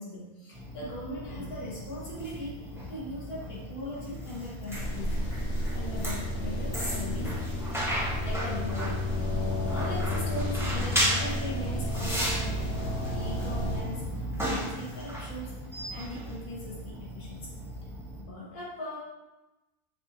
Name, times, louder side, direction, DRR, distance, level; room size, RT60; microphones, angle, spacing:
voice 1, 0.0-7.3 8.2-8.9 9.3-12.7 13.1-17.5 18.2-19.0, left 1 dB, 80° left, -6 dB, 1.8 m, -39 dB
sound 1, 0.5-18.2, equal, 5° right, 0.4 m, -35 dB
sound 2, 4.7-13.8, left 1 dB, 55° left, 1.1 m, -32 dB
6.6 x 2.5 x 2.8 m, 1.1 s
omnidirectional pair, 1.6 m